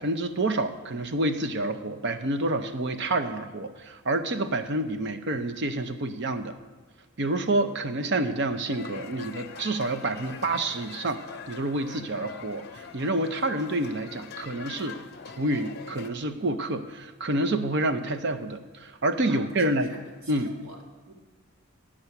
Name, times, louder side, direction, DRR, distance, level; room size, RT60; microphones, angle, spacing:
voice 1, 0.0-6.5 7.2-15.0 15.4-19.9 20.3-20.5, right 2 dB, 55° right, 9 dB, 0.7 m, -28 dB
sound 1, 8.7-16.1, left 5 dB, 50° left, 0.6 m, -43 dB
voice 2, 19.3-20.8 21.1-21.2, right 1 dB, 75° right, 0 dB, 1.8 m, -44 dB
10.0 x 8.1 x 5.8 m, 1.3 s
head